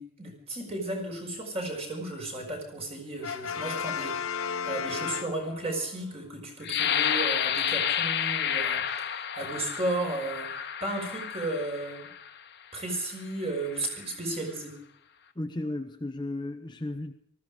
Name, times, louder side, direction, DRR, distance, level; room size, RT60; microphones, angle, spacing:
voice 1, 0.0-12.1 12.7-14.7, right 2 dB, 30° right, 1 dB, 5.6 m, -34 dB
Brass instrument, 3.2-5.9, left 7 dB, 70° left, 0.9 m, -34 dB
sound 1, 6.6-12.3 12.9-13.1 13.6-14.0, left 9 dB, 50° left, 1.4 m, -30 dB
voice 2, 15.4-17.1, left 1 dB, 20° left, 6 dB, 0.8 m, -34 dB
19.0 x 15.0 x 5.1 m, 0.70 s
head